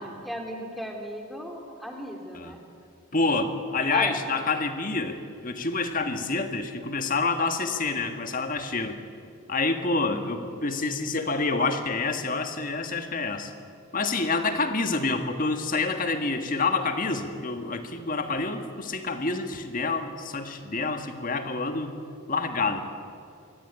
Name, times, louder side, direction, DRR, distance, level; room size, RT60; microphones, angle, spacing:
voice 1, 0.0-2.6 3.9-4.2 10.0-10.3, equal, ahead, 2 dB, 3.0 m, -36 dB
voice 2, 3.1-9.0 9.5-13.5 13.9-21.9 22.3-22.8, left 3 dB, 40° left, 7 dB, 1.8 m, -27 dB
23.5 x 17.0 x 9.7 m, 2.3 s
head